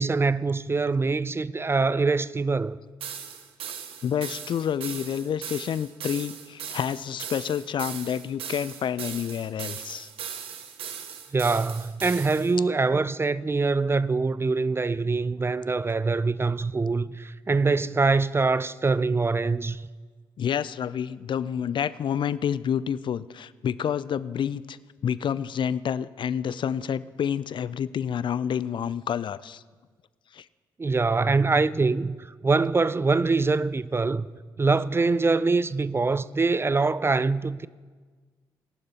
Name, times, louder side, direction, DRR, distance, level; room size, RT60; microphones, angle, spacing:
voice 1, 0.0-2.8 11.3-19.8 30.8-34.3 34.6-37.7, right 3 dB, 25° right, 0.4 m, -24 dB
sound 1, 3.0-12.5, right 8 dB, 65° right, 0.9 m, -38 dB
voice 2, 4.0-10.1 20.4-24.8 25.0-29.6 30.3-30.5, left 8 dB, 50° left, 0.4 m, -29 dB
18.5 x 11.5 x 2.9 m
hypercardioid pair, 45°, 10 cm